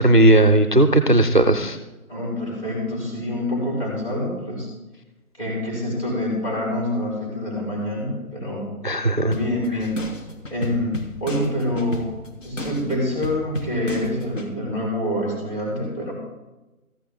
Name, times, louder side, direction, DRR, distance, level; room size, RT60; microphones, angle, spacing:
voice 1, 0.0-1.8 8.8-9.4, right 1 dB, 35° right, 6 dB, 0.4 m, -16 dB
voice 2, 2.1-4.7 5.4-8.7 9.2-10.0 10.5-12.1 12.4-16.1, left 1 dB, 25° left, -4 dB, 4.8 m, -26 dB
sound 1, 9.3-14.5, left 1 dB, 60° left, 1.6 m, -34 dB
14.5 x 11.0 x 3.7 m, 1.0 s
figure-of-eight pair, 160°, 44 cm